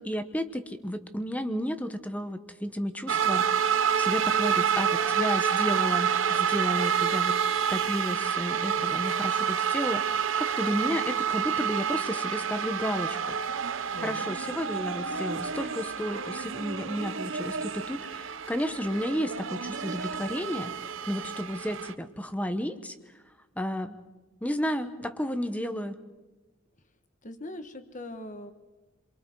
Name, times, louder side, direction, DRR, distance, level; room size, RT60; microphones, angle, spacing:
voice 1, 0.0-3.5 3.7-7.3 7.7-13.4 14.0-20.7 21.1-23.0 23.6-24.0 24.4-26.0, equal, 5° left, 10 dB, 1.0 m, -32 dB
sound 1, 3.1-21.9, right 7 dB, 65° right, 0.8 m, -28 dB
voice 2, 13.9-14.3 27.2-28.5, left 1 dB, 35° left, 9 dB, 1.5 m, -41 dB
29.5 x 23.5 x 4.7 m, 1.2 s
head